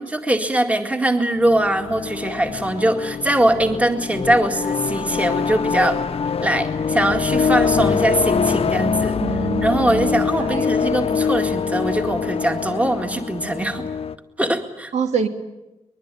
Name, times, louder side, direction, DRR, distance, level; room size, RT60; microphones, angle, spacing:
voice 1, 0.0-6.0 6.4-9.2 9.6-13.9 14.4-14.9, right 1 dB, 10° right, 5 dB, 2.1 m, -21 dB
sound 1, 1.4-14.2, left 6 dB, 55° left, 1.0 m, -24 dB
voice 2, 9.2-10.8 14.9-15.3, right 6 dB, 75° right, 5 dB, 2.9 m, -26 dB
24.0 x 21.5 x 9.1 m, 1.0 s
wide cardioid pair, 155°, 12 cm